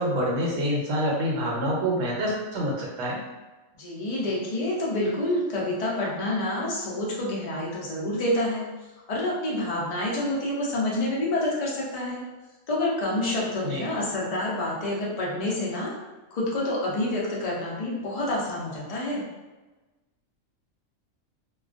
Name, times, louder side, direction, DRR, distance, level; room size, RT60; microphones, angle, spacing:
voice 1, 0.0-3.2 13.6-13.8, equal, 75° right, -3 dB, 1.0 m, -26 dB
voice 2, 3.7-8.6 9.1-12.2 12.7-15.9 16.3-19.2, left 1 dB, 50° left, -4 dB, 0.4 m, -28 dB
2.3 x 2.2 x 2.4 m, 1.2 s
omnidirectional pair, 1.4 m